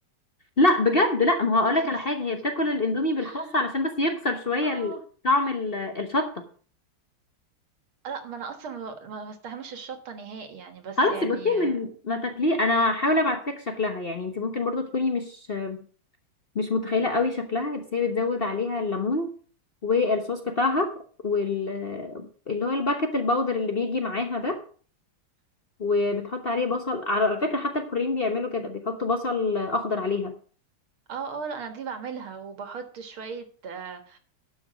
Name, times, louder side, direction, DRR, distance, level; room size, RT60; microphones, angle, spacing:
voice 1, 0.6-4.9 5.2-6.5 11.0-15.8 16.5-19.3 19.8-20.9 21.2-24.6 25.8-30.4, left 2 dB, 40° left, 5 dB, 0.9 m, -25 dB
voice 2, 3.2-3.6 4.6-5.0 8.0-11.9 31.1-34.2, right 5 dB, 80° right, 7 dB, 2.4 m, -37 dB
11.5 x 6.0 x 6.2 m, 0.43 s
omnidirectional pair, 2.3 m